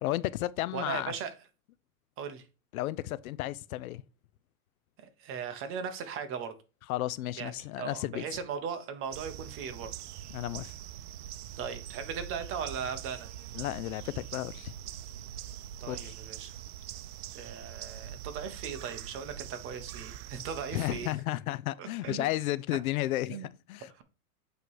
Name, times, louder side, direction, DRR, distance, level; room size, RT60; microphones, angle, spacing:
voice 1, 0.0-1.1 2.7-4.0 6.9-8.2 10.3-10.7 13.5-14.7 15.9-16.1 20.7-23.9, left 15 dB, 70° left, 0.6 m, -33 dB
voice 2, 0.7-1.3 2.2-2.4 5.0-6.5 7.4-9.9 11.6-13.3 15.8-16.5 17.3-21.1 21.8-22.3 23.3-23.5 23.9-24.0, right 7 dB, 30° right, 1.0 m, -38 dB
sound 1, 9.1-21.1, right 11 dB, 80° right, 0.6 m, -43 dB
8.3 x 3.3 x 4.7 m
supercardioid pair, 140°, 44 cm